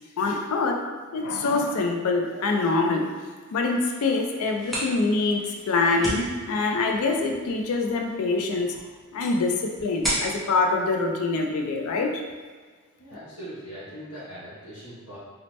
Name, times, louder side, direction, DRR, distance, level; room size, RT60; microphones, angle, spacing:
voice 1, 0.2-0.8 1.1-3.0 3.5-8.8 9.1-12.2, left 3 dB, 70° left, 3 dB, 0.4 m, -25 dB
sound 1, 4.4-11.9, equal, ahead, 0.6 m, -36 dB
voice 2, 13.0-15.2, equal, 90° left, -11 dB, 1.0 m, -40 dB
2.8 x 2.0 x 3.1 m, 1.5 s
head